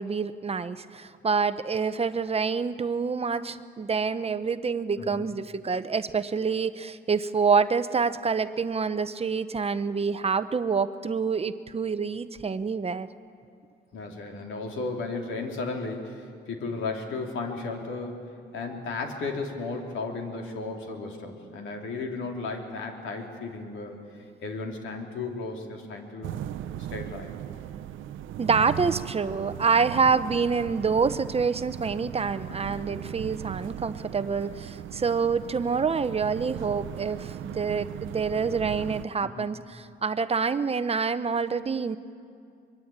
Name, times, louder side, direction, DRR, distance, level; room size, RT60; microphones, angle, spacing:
voice 1, 0.0-13.1 28.4-42.0, right 5 dB, 30° right, 12 dB, 0.8 m, -27 dB
voice 2, 13.9-26.4 26.7-27.3 32.6-32.8 39.2-39.5, left 3 dB, 80° left, 2 dB, 3.4 m, -35 dB
sound 1, 26.2-39.1, right 11 dB, 80° right, 0.7 m, -38 dB
23.0 x 22.5 x 8.8 m, 2.5 s
cardioid pair, 90°, 20 cm